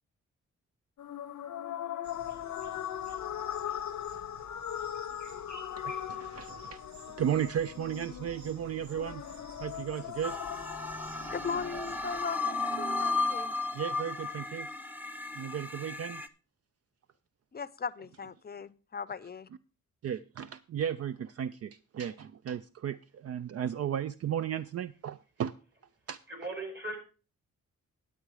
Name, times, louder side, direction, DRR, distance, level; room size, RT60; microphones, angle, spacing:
sound 1, 1.0-11.9, left 10 dB, 80° left, 0.7 m, -39 dB
sound 2, 2.0-12.2, right 2 dB, 70° right, 1.6 m, -52 dB
voice 1, 5.8-6.8 7.2-9.2 9.6-10.4 13.7-14.7 15.3-16.3 20.0-25.5 26.1-26.2, right 9 dB, 55° right, 0.4 m, -34 dB
sound 3, 10.2-16.3, left 3 dB, 5° right, 0.7 m, -34 dB
voice 2, 11.3-13.5 17.5-19.5, left 6 dB, 35° left, 0.6 m, -38 dB
voice 3, 26.3-27.0, right 2 dB, 40° right, 4.0 m, -38 dB
10.0 x 8.2 x 4.7 m
cardioid pair, 90°, 29 cm